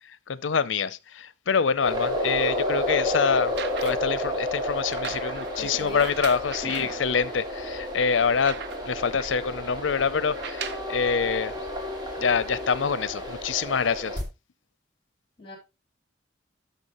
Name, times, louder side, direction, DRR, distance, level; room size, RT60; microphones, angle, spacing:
voice 1, 0.3-11.5 12.2-14.2, left 6 dB, 75° left, 0.6 m, -26 dB
sound 1, 1.8-14.2, left 1 dB, 25° right, 2.4 m, -31 dB
sound 2, 3.4-4.2 4.9-7.0 7.6-7.7 8.0-9.1 10.2-10.9 11.9-12.0, right 7 dB, 65° right, 0.7 m, -39 dB
voice 2, 5.6-6.1 6.6-6.9 15.4-15.6, left 1 dB, 25° left, 4.1 m, -37 dB
12.0 x 5.9 x 3.0 m
head